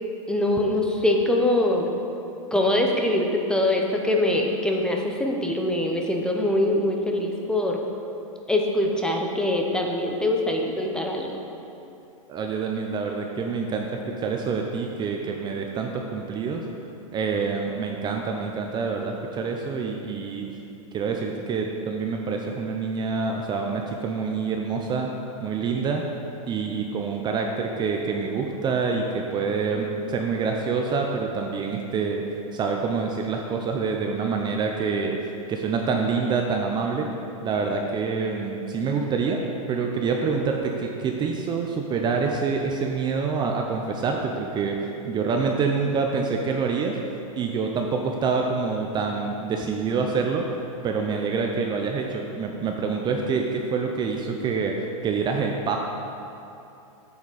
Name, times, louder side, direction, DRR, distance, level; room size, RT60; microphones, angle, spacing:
voice 1, 0.3-1.9 2.5-7.8 8.5-11.4, left 1 dB, 5° left, 1 dB, 0.9 m, -23 dB
voice 2, 12.3-13.9 14.2-16.6 17.1-20.5 20.9-25.1 25.4-26.0 26.5-32.2 32.5-35.2 35.5-37.1 37.4-39.4 39.7-47.0 47.4-50.5 50.8-54.8 55.0-55.8, right 5 dB, 25° right, 2 dB, 0.6 m, -26 dB
8.5 x 7.1 x 4.1 m, 2.8 s
hypercardioid pair, 120°, 18 cm